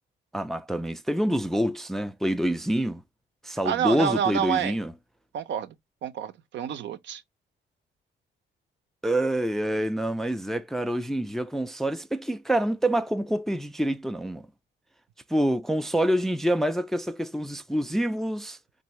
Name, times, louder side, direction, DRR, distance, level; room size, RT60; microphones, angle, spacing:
voice 1, 0.3-3.0 3.4-4.9 9.0-14.5 15.3-18.6, right 1 dB, ahead, 0.3 m, -26 dB
voice 2, 3.6-4.8 5.3-5.7 6.0-7.2, right 9 dB, 65° right, 0.5 m, -28 dB
3.5 x 2.6 x 3.0 m
cardioid pair, 90°, 20 cm